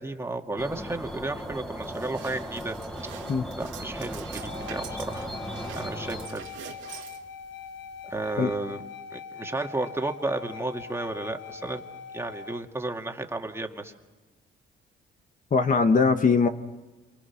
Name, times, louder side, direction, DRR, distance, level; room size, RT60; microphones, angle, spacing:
voice 1, 0.0-2.8 3.5-5.3 5.8-6.5 8.0-8.8 9.1-11.8 12.1-13.9, right 2 dB, 15° right, 3 dB, 2.2 m, -33 dB
sound 1, 0.6-6.3, equal, ahead, 1.6 m, -37 dB
sound 2, 1.1-8.4, right 9 dB, 80° right, 2.5 m, -46 dB
sound 3, 4.4-12.6, left 7 dB, 75° left, 1.3 m, -42 dB
voice 2, 15.5-16.5, left 4 dB, 40° left, 7 dB, 1.5 m, -21 dB
28.0 x 24.5 x 5.9 m, 1.2 s
cardioid pair, 90°, 20 cm